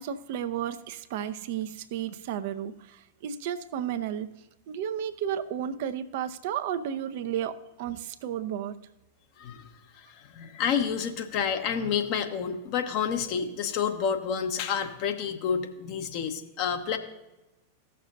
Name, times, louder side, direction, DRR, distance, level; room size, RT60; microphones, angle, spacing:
voice 1, 0.0-4.3 4.7-8.8, right 9 dB, 50° right, 10 dB, 0.6 m, -33 dB
voice 2, 9.4-9.7 10.1-17.0, left 7 dB, 45° left, 5 dB, 1.0 m, -29 dB
16.0 x 6.6 x 2.6 m, 1.0 s
figure-of-eight pair, 90°, 0 cm